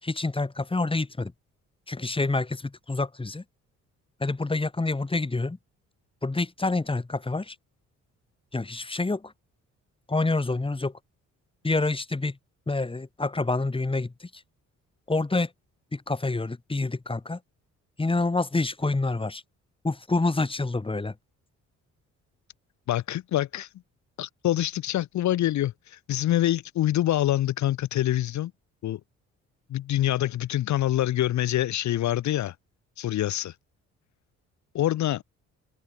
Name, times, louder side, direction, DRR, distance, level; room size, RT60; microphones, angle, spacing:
voice 1, 0.0-1.3 1.9-3.4 4.2-5.6 6.2-7.5 8.5-9.3 10.1-11.0 11.6-12.4 12.7-14.4 15.1-15.5 15.9-17.4 18.0-19.4 19.8-21.1, left 3 dB, 15° left, 3.4 m, -27 dB
voice 2, 22.9-23.7 24.2-28.5 28.8-29.0 29.7-32.5 33.0-33.5 34.7-35.2, left 13 dB, 70° left, 1.0 m, -25 dB
cardioid pair, 90°, 30 cm